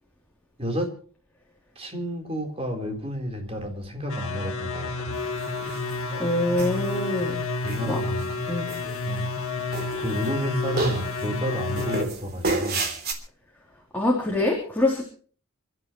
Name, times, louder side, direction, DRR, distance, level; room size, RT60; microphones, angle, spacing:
voice 1, 0.6-0.9 1.8-5.2 7.6-8.3 9.1-9.3 10.0-12.9, equal, 25° right, 2 dB, 3.9 m, -31 dB
sound 1, 4.1-12.0, left 3 dB, 75° left, 1.9 m, -30 dB
sound 2, 5.4-6.0 6.6-7.2 7.6-8.2 8.7-9.4 9.7-10.4 10.8-11.3 11.8-13.1, right 2 dB, 45° right, 3.3 m, -30 dB
voice 2, 6.2-7.4 7.8-8.0 8.5-8.7 13.9-15.0, left 1 dB, 10° left, -2 dB, 3.3 m, -24 dB
28.0 x 13.0 x 3.1 m, 0.43 s
head